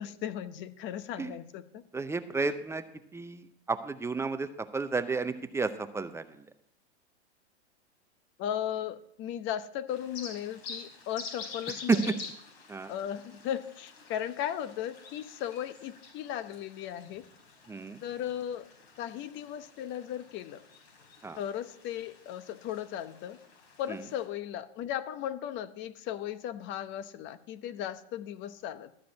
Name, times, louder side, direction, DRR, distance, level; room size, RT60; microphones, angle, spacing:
voice 1, 0.0-1.8 8.4-12.2 12.9-17.2 18.0-18.7 19.0-20.6 21.4-23.4 23.8-28.9, left 10 dB, 35° left, 13 dB, 0.8 m, -36 dB
voice 2, 1.9-2.8 3.1-3.4 3.7-4.5 4.7-6.2 11.9-12.0 12.7-12.9 17.7-18.0 21.2-21.4, right 4 dB, 10° right, 10 dB, 0.5 m, -31 dB
sound 1, 9.9-24.3, left 4 dB, 65° left, 4.6 m, -48 dB
13.0 x 5.1 x 8.2 m, 0.74 s
hypercardioid pair, 115°, 33 cm